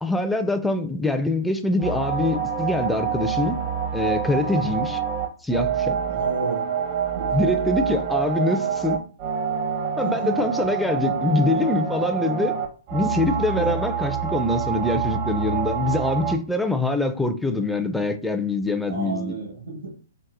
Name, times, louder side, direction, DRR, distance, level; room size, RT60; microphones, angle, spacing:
voice 1, 0.0-3.6 3.9-5.0 5.4-6.0 7.3-9.0 10.0-12.6 12.9-19.4, left 2 dB, 5° left, 0.3 m, -24 dB
sound 1, 1.8-16.3, right 8 dB, 45° right, 0.6 m, -26 dB
voice 2, 6.0-6.7 7.1-7.3 10.0-10.4 13.5-13.8 18.9-19.9, right 3 dB, 75° right, 1.3 m, -31 dB
4.1 x 2.0 x 2.5 m
hypercardioid pair, 130°, 0 cm